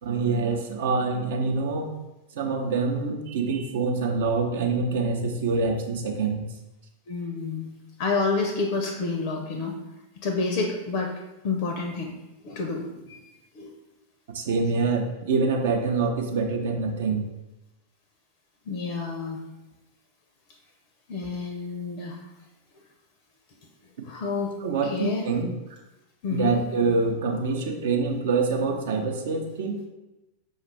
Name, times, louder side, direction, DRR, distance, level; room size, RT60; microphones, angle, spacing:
voice 1, 0.0-1.9 2.3-6.4 14.3-17.2 24.6-25.5 26.3-29.9, right 4 dB, 55° right, 3 dB, 0.5 m, -25 dB
voice 2, 7.1-7.7 8.0-9.7 10.2-11.1 11.4-12.1 12.4-13.7 18.7-19.4 21.1-22.2 24.0-24.5 24.8-25.3 26.2-26.6, left 4 dB, 45° left, 3 dB, 0.5 m, -29 dB
5.2 x 2.4 x 3.2 m, 0.99 s
figure-of-eight pair, 90°, 0 cm